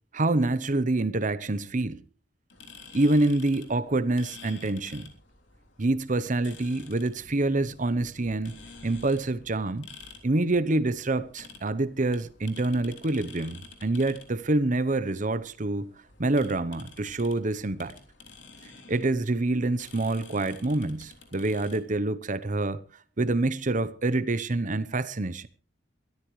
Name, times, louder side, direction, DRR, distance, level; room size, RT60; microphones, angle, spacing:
voice 1, 0.1-2.0 2.9-5.1 5.8-9.9 10.2-15.9 16.2-17.9 18.9-22.8 23.2-25.5, right 2 dB, 45° right, 0.9 m, -26 dB
sound 1, 2.5-21.8, left 4 dB, 75° left, 3.3 m, -50 dB
22.5 x 13.5 x 3.2 m
head